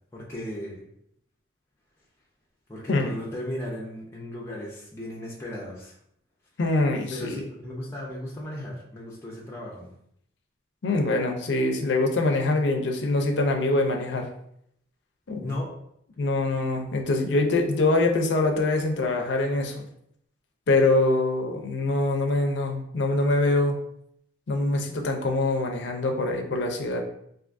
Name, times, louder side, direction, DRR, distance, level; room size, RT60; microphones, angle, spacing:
voice 1, 0.1-0.9 2.7-6.0 7.1-9.9 15.4-15.7, left 1 dB, 15° left, -4 dB, 0.5 m, -36 dB
voice 2, 6.6-7.4 10.8-14.3 15.3-15.5 16.2-19.9 20.7-23.8 24.5-27.0, left 2 dB, 65° left, 3 dB, 0.5 m, -24 dB
3.5 x 2.5 x 2.5 m, 0.73 s
head